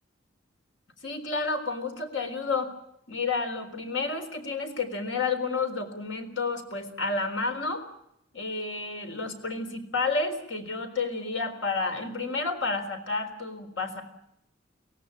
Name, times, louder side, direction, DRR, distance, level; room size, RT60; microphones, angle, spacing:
voice 1, 1.0-2.7 3.1-7.8 8.3-14.0, left 3 dB, 85° left, 7 dB, 3.9 m, -30 dB
24.0 x 17.5 x 8.7 m, 0.77 s
head